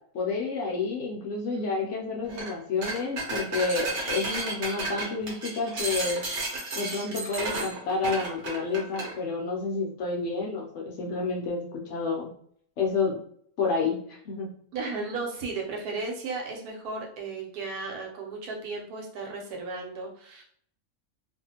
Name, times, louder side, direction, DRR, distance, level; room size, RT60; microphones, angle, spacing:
voice 1, 0.1-6.2 6.8-12.3 12.8-13.2 13.6-14.5, left 4 dB, 65° left, 0 dB, 0.8 m, -29 dB
sound 1, 2.3-2.5 2.8-9.1, right 2 dB, 60° right, 1.0 m, -32 dB
voice 2, 14.7-20.4, right 3 dB, 90° right, 0 dB, 1.2 m, -35 dB
2.5 x 2.4 x 2.8 m, 0.63 s
omnidirectional pair, 1.5 m